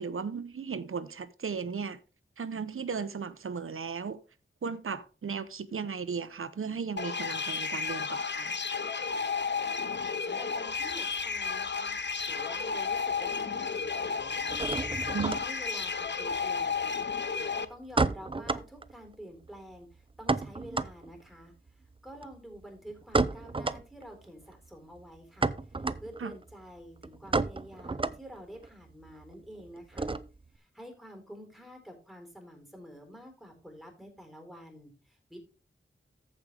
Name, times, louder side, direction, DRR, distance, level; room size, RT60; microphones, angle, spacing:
voice 1, 0.0-2.0 2.4-4.2 4.6-8.6 15.1-15.4 26.2-26.3, right 5 dB, 85° right, 0.8 m, -36 dB
sound 1, 7.0-17.6, left 5 dB, 55° left, 0.7 m, -32 dB
voice 2, 9.9-14.4 14.7-21.5 22.0-30.2 30.5-35.4, equal, ahead, 3.9 m, -48 dB
sound 2, 10.7-12.3 12.6-13.3 13.5-30.6, right 3 dB, 25° right, 0.5 m, -34 dB
14.5 x 5.1 x 3.4 m
wide cardioid pair, 75°, 21 cm